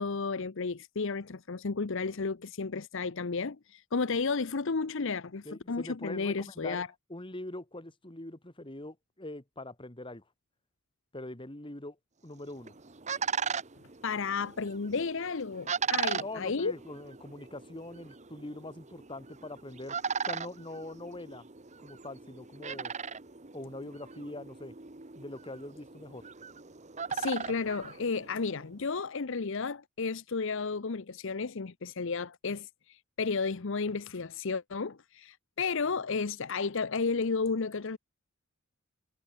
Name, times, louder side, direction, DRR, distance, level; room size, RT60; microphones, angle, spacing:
voice 1, 0.0-6.9 14.0-16.7 27.1-38.0, left 4 dB, 60° left, 0.8 m, -33 dB
voice 2, 5.4-10.2 11.1-12.0 12.2-12.7 16.1-20.0 20.2-21.5 21.8-22.9 23.5-24.8 25.1-26.3, left 1 dB, 25° left, 2.0 m, -43 dB
sound 1, 12.4-28.6, right 6 dB, 35° right, 1.4 m, -38 dB
head